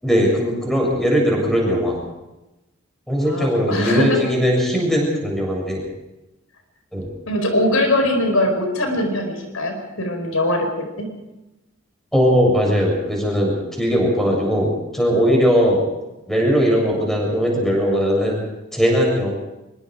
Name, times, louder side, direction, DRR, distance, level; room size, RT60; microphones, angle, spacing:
voice 1, 0.0-2.0 3.1-5.8 6.9-7.1 12.1-15.8 16.3-18.4 18.7-19.3, equal, ahead, -1 dB, 7.4 m, -19 dB
voice 2, 3.2-4.2 7.3-10.7, left 1 dB, 80° left, 5 dB, 5.0 m, -21 dB
24.5 x 23.0 x 5.0 m, 0.99 s
head